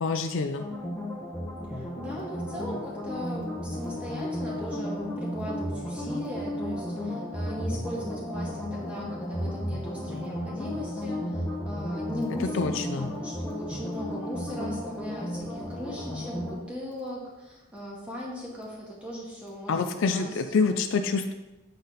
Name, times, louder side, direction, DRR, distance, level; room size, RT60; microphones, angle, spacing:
voice 1, 0.0-0.6 12.4-13.1 19.7-21.3, left 4 dB, 65° left, 7 dB, 0.4 m, -26 dB
sound 1, 0.6-16.6, left 1 dB, 10° left, 1.0 m, -34 dB
voice 2, 1.7-12.7 13.0-19.8 20.1-20.7, equal, 5° right, -5 dB, 1.7 m, -38 dB
8.0 x 4.1 x 4.0 m, 1.0 s
head